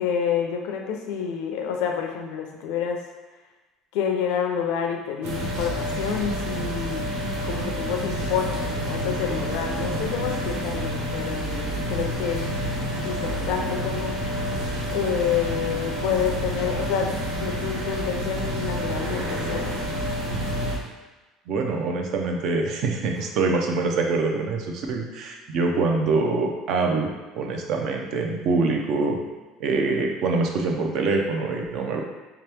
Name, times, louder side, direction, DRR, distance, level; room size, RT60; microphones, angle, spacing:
voice 1, 0.0-3.0 3.9-7.0 7.4-12.5 13.0-14.2 14.9-17.1 17.4-19.8, left 7 dB, 70° left, 3 dB, 0.5 m, -28 dB
sound 1, 5.2-20.8, equal, 80° right, 0.8 m, -28 dB
voice 2, 21.5-29.2 29.6-32.0, right 3 dB, 45° right, 2 dB, 0.4 m, -24 dB
3.3 x 2.9 x 3.3 m, 1.2 s
cardioid pair, 175°, 0 cm